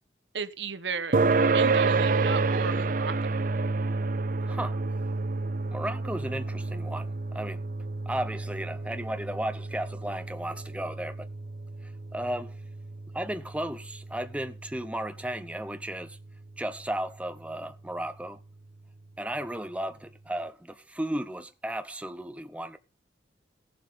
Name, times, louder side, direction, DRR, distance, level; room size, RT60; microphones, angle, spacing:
voice 1, 0.3-1.2 1.5-3.4, right 5 dB, 80° right, 1.1 m, -34 dB
sound 1, 1.1-16.0, right 3 dB, 50° right, 0.5 m, -29 dB
voice 2, 4.5-4.8 5.7-7.6 8.1-11.3 12.1-12.5 13.1-16.2 16.6-18.4 19.2-22.8, right 1 dB, 5° right, 0.7 m, -34 dB
15.5 x 7.5 x 5.4 m
head